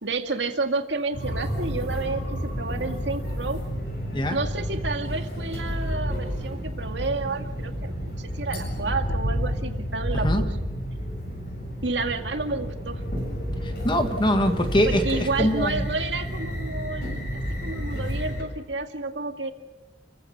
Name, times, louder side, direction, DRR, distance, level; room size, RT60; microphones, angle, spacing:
voice 1, 0.0-3.6 4.3-10.5 11.8-13.0 14.9-19.5, right 3 dB, 75° right, 6 dB, 2.1 m, -30 dB
sound 1, 1.1-18.4, equal, 60° left, 7.8 m, -30 dB
voice 2, 13.6-15.8, equal, 25° left, 7 dB, 1.5 m, -23 dB
30.0 x 15.5 x 7.2 m, 1.1 s
head